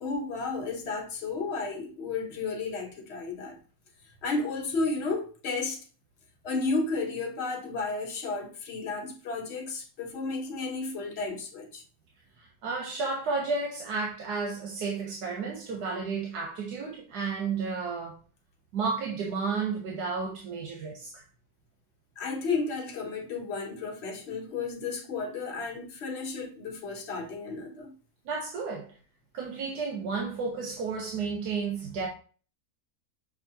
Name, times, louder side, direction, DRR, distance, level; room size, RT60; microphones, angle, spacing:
voice 1, 0.0-3.6 4.2-5.8 6.4-11.8 22.2-27.9, left 3 dB, 50° left, 1.1 m, -33 dB
voice 2, 12.4-18.2 18.7-21.2 28.2-28.9 29.3-32.1, right 4 dB, 90° right, 1.3 m, -32 dB
6.2 x 2.7 x 2.8 m
omnidirectional pair, 1.7 m